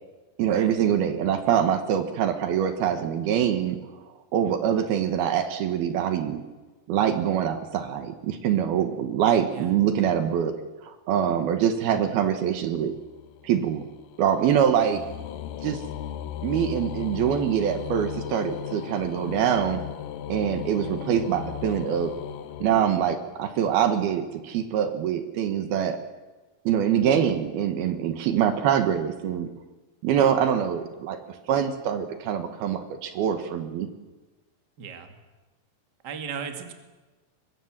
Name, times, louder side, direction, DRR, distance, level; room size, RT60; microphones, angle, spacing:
voice 1, 0.4-3.8 4.3-6.4 6.9-10.5 10.9-12.9 13.4-13.9 14.2-15.0 15.6-15.8 16.4-19.8 20.3-22.1 22.6-26.0 26.7-29.5 30.0-31.2 31.5-33.9, right 9 dB, 70° right, 8 dB, 3.1 m, -24 dB
sound 1, 12.6-23.6, left 10 dB, 75° left, 2.1 m, -37 dB
voice 2, 34.8-35.1 36.0-36.7, right 6 dB, 35° right, 6 dB, 2.0 m, -36 dB
23.5 x 22.0 x 7.5 m, 1.2 s
omnidirectional pair, 4.8 m